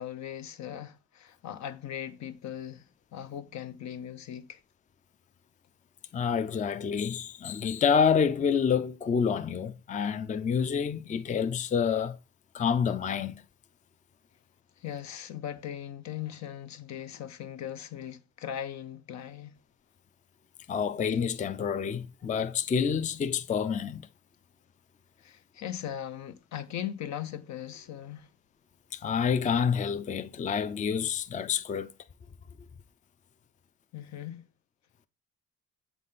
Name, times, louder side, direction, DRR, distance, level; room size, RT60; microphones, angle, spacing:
voice 1, 0.0-2.9 3.1-4.6 14.8-19.6 25.2-28.3 33.9-34.5, left 10 dB, 65° left, 0.7 m, -39 dB
voice 2, 6.1-12.2 12.5-13.4 20.7-24.0 28.9-31.9, left 6 dB, 25° left, 0.4 m, -28 dB
7.6 x 4.1 x 3.6 m
cardioid pair, 90°, 30 cm